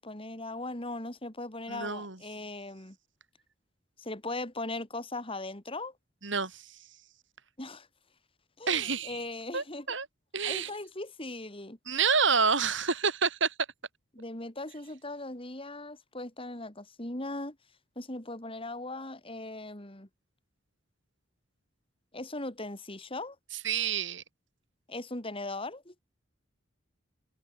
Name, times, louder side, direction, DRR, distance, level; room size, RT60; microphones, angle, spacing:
voice 1, 0.0-3.0 4.0-5.9 7.6-7.9 8.6-9.9 10.4-11.8 14.1-17.6 17.9-20.1 22.1-23.4 24.9-25.9, left 2 dB, 25° left, 3.3 m, -39 dB
voice 2, 1.7-2.2 6.2-6.6 8.7-9.2 9.5-10.1 10.3-10.7 11.9-13.5 23.6-24.2, right 5 dB, 65° right, 5.0 m, -28 dB
head